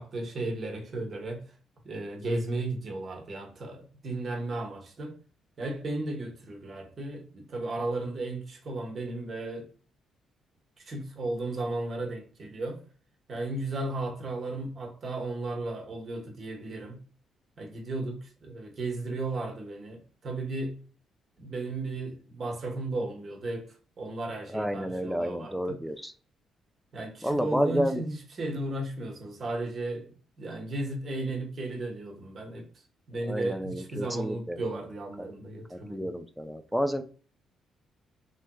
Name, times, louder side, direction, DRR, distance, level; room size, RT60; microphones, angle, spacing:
voice 1, 0.0-1.4 1.8-5.2 5.6-9.7 10.8-12.8 13.3-17.0 17.6-20.8 21.4-25.8 26.9-32.7 33.1-36.1, right 2 dB, 50° right, 1.1 m, -35 dB
voice 2, 24.5-26.1 27.2-28.0 33.2-34.6 35.2-35.3 35.7-37.0, equal, ahead, 0.4 m, -30 dB
3.2 x 2.9 x 2.2 m
cardioid pair, 90°, 0 cm